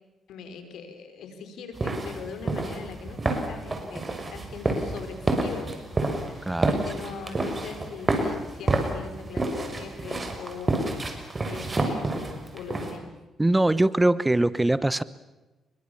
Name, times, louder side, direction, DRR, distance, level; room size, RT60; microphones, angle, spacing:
voice 1, 0.3-10.8 11.4-13.1, left 4 dB, 75° left, 8 dB, 4.9 m, -41 dB
sound 1, 1.8-13.0, right 2 dB, 30° right, 6.2 m, -28 dB
voice 2, 13.4-15.0, right 1 dB, 15° right, 17 dB, 1.0 m, -22 dB
29.5 x 23.5 x 7.2 m, 1.1 s
supercardioid pair, 65°, 0 cm